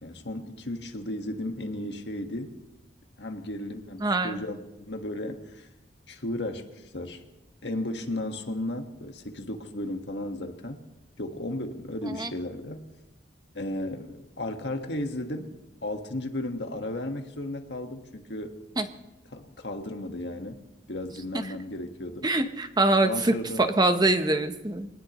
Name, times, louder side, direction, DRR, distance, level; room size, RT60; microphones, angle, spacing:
voice 1, 0.0-2.6 3.2-5.7 6.1-7.2 7.6-10.8 11.2-12.9 13.5-15.6 15.8-18.6 19.3-20.6 20.9-22.3 23.0-23.6, left 1 dB, 75° left, 5 dB, 1.6 m, -34 dB
voice 2, 4.0-4.4 12.1-12.3 18.8-18.9 21.3-21.4 22.2-24.9, right 2 dB, 25° right, 8 dB, 0.9 m, -24 dB
24.5 x 19.0 x 3.1 m, 0.99 s
head